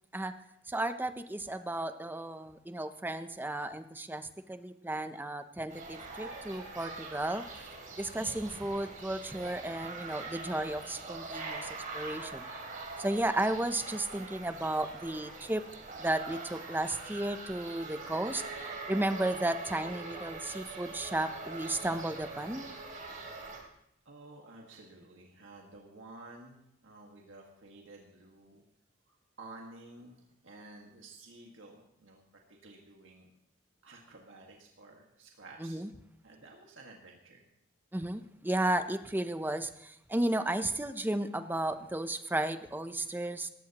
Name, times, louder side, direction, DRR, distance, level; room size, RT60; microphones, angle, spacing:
voice 1, 0.7-7.4 8.0-12.5 13.0-15.7 16.0-22.7 35.6-35.9 37.9-43.5, right 1 dB, 10° right, 10 dB, 0.6 m, -34 dB
sound 1, 5.7-23.6, right 3 dB, 45° right, 2.9 m, -43 dB
voice 2, 24.1-28.6 29.1-32.2 32.5-33.3 33.8-35.8 36.2-37.5, right 2 dB, 75° right, 0 dB, 1.7 m, -52 dB
18.5 x 15.0 x 3.0 m, 0.78 s
head